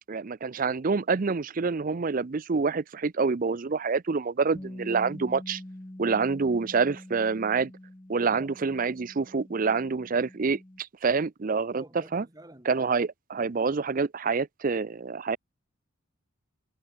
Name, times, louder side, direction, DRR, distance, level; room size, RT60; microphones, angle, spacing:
voice 1, 0.1-5.6 6.0-7.7 8.1-11.8 12.1-12.2 12.7-15.4, right 4 dB, 40° right, 0.5 m, -27 dB
Bass guitar, 4.6-10.8, left 1 dB, 15° left, 0.8 m, -45 dB
voice 2, 8.2-8.6 11.7-12.9, right 1 dB, 20° right, 2.2 m, -48 dB
head